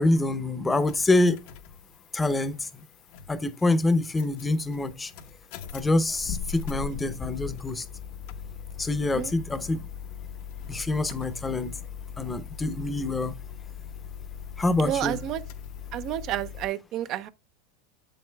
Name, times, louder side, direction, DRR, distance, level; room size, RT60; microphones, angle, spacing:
voice 1, 0.0-1.4 2.1-2.8 3.3-5.1 5.7-7.9 8.8-9.8 10.7-11.7 12.2-13.4 14.6-15.2, left 2 dB, 10° left, 0.7 m, -26 dB
sound 1, 0.7-16.7, left 7 dB, 60° left, 0.8 m, -40 dB
voice 2, 14.8-15.4 15.9-17.3, right 12 dB, 45° right, 0.5 m, -30 dB
7.7 x 7.5 x 2.3 m
supercardioid pair, 125°, 0 cm